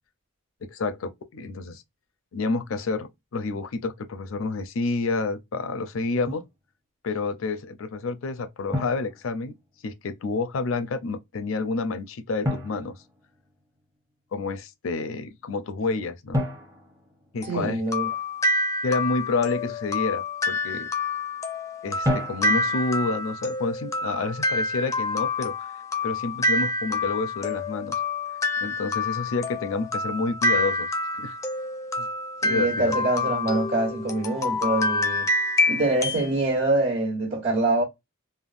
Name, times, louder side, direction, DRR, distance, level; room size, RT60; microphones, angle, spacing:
voice 1, 0.6-1.8 2.3-6.4 7.0-9.6 9.8-13.0 14.3-16.4 17.3-17.8 18.8-20.9 21.8-25.6 26.0-28.0 28.6-30.9 31.2-31.3 32.0-32.1 32.5-33.0, left 3 dB, 75° left, 0.5 m, -29 dB
Drum, 6.3-6.5 8.7-9.9 12.4-13.8 16.3-18.0 22.0-23.0, left 1 dB, 15° right, 0.7 m, -32 dB
sound 1, 17.4-36.3, left 2 dB, 15° left, 0.4 m, -27 dB
voice 2, 17.4-18.1 32.4-35.3 35.7-37.8, right 2 dB, 60° right, 1.4 m, -25 dB
3.5 x 2.1 x 2.4 m
head